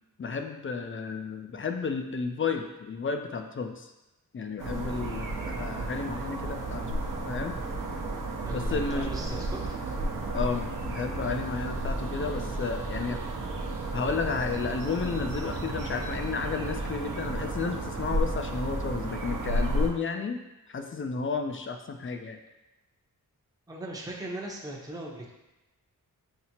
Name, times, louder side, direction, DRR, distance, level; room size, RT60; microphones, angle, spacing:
voice 1, 0.2-3.9 4.3-6.8 7.3-7.6 8.5-9.1 10.3-13.2 13.9-20.4 20.7-22.4, left 5 dB, 35° left, 6 dB, 0.4 m, -32 dB
sound 1, 4.6-19.9, right 2 dB, 60° right, 0.7 m, -32 dB
voice 2, 8.4-9.8 23.7-25.3, right 1 dB, 10° right, -2 dB, 0.7 m, -38 dB
5.8 x 2.0 x 2.8 m, 0.99 s
cardioid pair, 65°, 37 cm